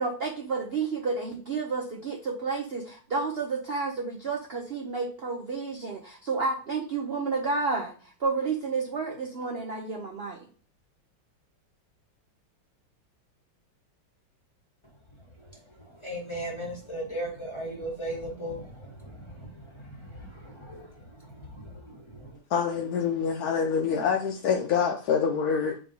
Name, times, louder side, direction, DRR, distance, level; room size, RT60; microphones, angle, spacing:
voice 1, 0.0-7.9 8.2-10.5, right 4 dB, 65° right, 1 dB, 0.6 m, -30 dB
voice 2, 16.0-22.4, right 1 dB, 15° left, -2 dB, 1.3 m, -38 dB
voice 3, 22.5-25.8, left 6 dB, 65° left, 1 dB, 1.0 m, -26 dB
4.7 x 3.9 x 5.2 m, 0.40 s
omnidirectional pair, 2.1 m